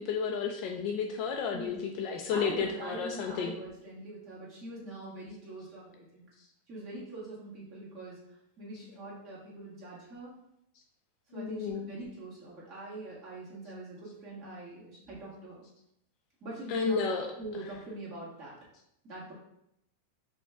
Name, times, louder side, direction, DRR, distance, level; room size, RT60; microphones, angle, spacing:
voice 1, 0.0-3.5 11.3-11.9 16.7-17.3, left 6 dB, 45° left, 2 dB, 0.4 m, -32 dB
voice 2, 2.3-6.2 6.7-8.2 8.6-10.3 11.3-15.6 16.4-17.0 17.4-18.6 19.0-19.3, right 2 dB, 40° right, -7 dB, 1.6 m, -43 dB
5.1 x 2.2 x 3.5 m, 0.79 s
supercardioid pair, 135°, 0 cm